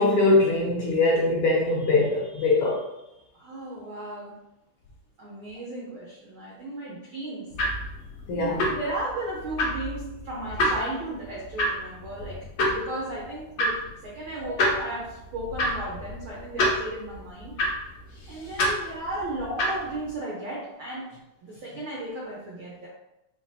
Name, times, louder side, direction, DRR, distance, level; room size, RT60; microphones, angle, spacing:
voice 1, 0.0-2.8 8.3-8.7, left 2 dB, 85° left, -4 dB, 1.3 m, -22 dB
voice 2, 3.3-4.4 5.2-7.5 8.3-12.4 12.7-17.6 18.3-21.1 21.4-22.9, right 1 dB, 75° right, -5 dB, 1.1 m, -35 dB
sound 1, 7.5-20.1, left 1 dB, 60° left, 1.5 m, -30 dB
5.0 x 2.8 x 2.7 m, 0.90 s
omnidirectional pair, 3.4 m